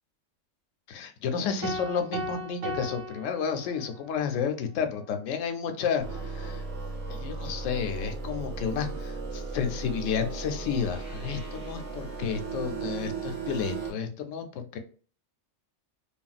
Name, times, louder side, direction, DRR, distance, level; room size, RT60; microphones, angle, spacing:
voice 1, 0.9-6.6 7.1-14.8, left 6 dB, 85° left, 7 dB, 0.9 m, -31 dB
sound 1, 1.6-4.1, right 1 dB, 85° right, 1.1 m, -36 dB
sound 2, 6.0-13.9, right 4 dB, 35° right, 0.9 m, -36 dB
3.4 x 2.2 x 2.4 m, 0.41 s
omnidirectional pair, 1.3 m